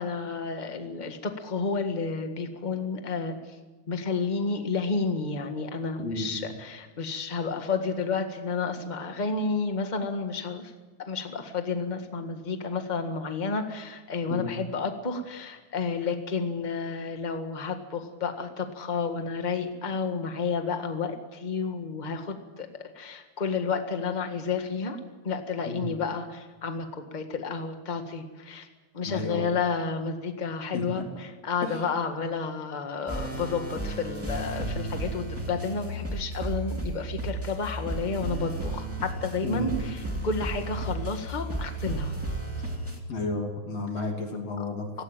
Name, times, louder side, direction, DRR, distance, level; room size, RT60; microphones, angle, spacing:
voice 1, 0.0-3.5 3.9-10.7 11.1-22.7 22.9-25.0 25.2-28.7 28.9-42.1 44.9-45.0, left 4 dB, 20° left, 6 dB, 1.2 m, -31 dB
voice 2, 6.0-6.5 14.3-14.6 25.7-25.9 29.0-29.5 30.7-31.0 31.6-31.9 39.4-39.8 43.1-44.9, left 2 dB, 55° left, 2 dB, 4.0 m, -32 dB
sound 1, 33.1-43.0, right 1 dB, 5° right, 2.1 m, -33 dB
18.0 x 18.0 x 9.0 m, 1.3 s
omnidirectional pair, 3.4 m